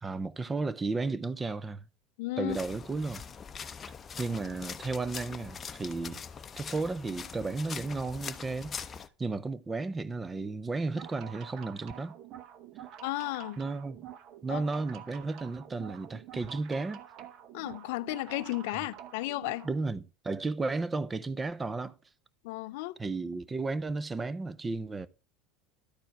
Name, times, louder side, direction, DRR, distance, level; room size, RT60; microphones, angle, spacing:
voice 1, 0.0-1.9 2.4-3.2 4.2-6.2 6.6-8.8 9.2-12.2 13.6-14.0 14.4-17.0 19.6-21.9 23.0-25.1, right 3 dB, 20° right, 0.6 m, -33 dB
voice 2, 2.2-2.6 13.0-13.6 14.5-14.6 17.5-19.7 22.4-22.9, left 18 dB, 70° left, 0.4 m, -34 dB
sound 1, 2.5-9.1, left 6 dB, 30° left, 0.7 m, -42 dB
sound 2, 10.8-19.7, right 10 dB, 50° right, 0.9 m, -48 dB
12.0 x 4.5 x 4.5 m
hypercardioid pair, 100°, 0 cm